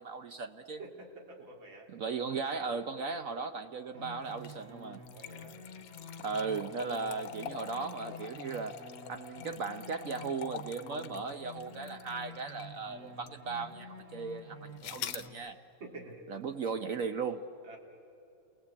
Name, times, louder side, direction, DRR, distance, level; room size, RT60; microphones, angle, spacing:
voice 1, 0.0-0.8 1.9-5.0 6.2-8.8 9.1-15.6 16.3-17.5, right 5 dB, 60° right, 9 dB, 0.9 m, -37 dB
voice 2, 0.8-1.9 5.1-5.6 15.8-16.2 17.6-17.8, right 2 dB, 85° right, -1 dB, 3.9 m, -48 dB
sound 1, 3.9-15.3, left 1 dB, 40° right, 2.3 m, -49 dB
sound 2, 4.3-12.8 13.3-13.4 14.8-15.3, left 9 dB, 75° left, 1.5 m, -45 dB
29.0 x 20.5 x 8.5 m, 2.6 s
omnidirectional pair, 2.1 m